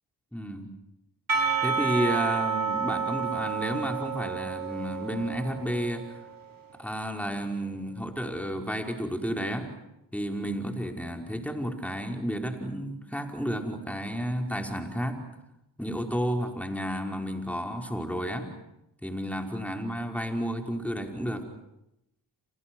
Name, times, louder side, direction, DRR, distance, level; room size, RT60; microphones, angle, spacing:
voice 1, 0.3-0.7 1.6-6.2 6.8-9.7 10.1-15.2 15.8-18.5 19.0-21.5, equal, 5° left, 4 dB, 5.3 m, -31 dB
Percussion / Church bell, 1.3-6.4, right 6 dB, 50° right, 6.5 m, -30 dB
29.0 x 27.0 x 6.4 m, 0.87 s
cardioid pair, 45°, 42 cm